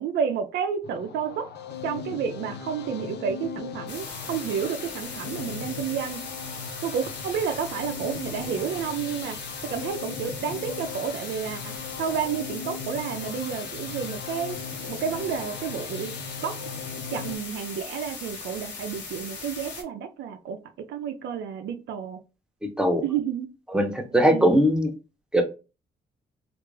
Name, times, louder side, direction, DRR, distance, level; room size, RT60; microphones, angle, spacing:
voice 1, 0.0-1.5 1.8-6.3 6.8-14.6 14.8-16.1 16.4-16.6 17.1-20.6 20.9-22.2 23.0-23.5 24.2-24.6, right 7 dB, 80° right, 7 dB, 0.5 m, -30 dB
sound 1, 0.8-17.4, left 6 dB, 70° left, 0.6 m, -39 dB
sound 2, 3.9-19.8, left 4 dB, 90° left, 1.0 m, -39 dB
voice 2, 22.6-23.0 23.7-24.9 25.3-25.4, equal, 5° right, 4 dB, 0.9 m, -20 dB
3.2 x 2.5 x 3.2 m, 0.31 s
supercardioid pair, 60°, 18 cm